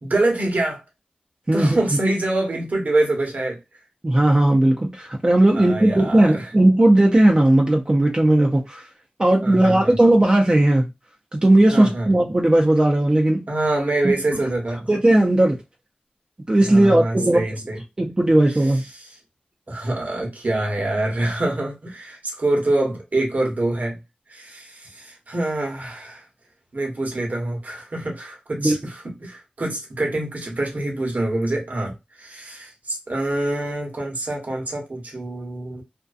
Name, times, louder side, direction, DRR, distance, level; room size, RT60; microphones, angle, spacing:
voice 1, 0.0-0.8 1.5-3.6 5.5-6.5 9.4-10.0 11.7-12.1 13.5-14.9 16.7-17.8 18.9-19.1 19.7-24.0 24.3-26.2 26.7-35.8, right 2 dB, 60° right, 1.1 m, -25 dB
voice 2, 4.0-8.8 9.2-10.9 11.3-13.4 14.0-14.1 14.9-15.6 16.5-17.4 18.0-18.8 28.6-28.8, right 1 dB, 30° right, 0.6 m, -17 dB
2.6 x 2.2 x 2.4 m
cardioid pair, 45°, 3 cm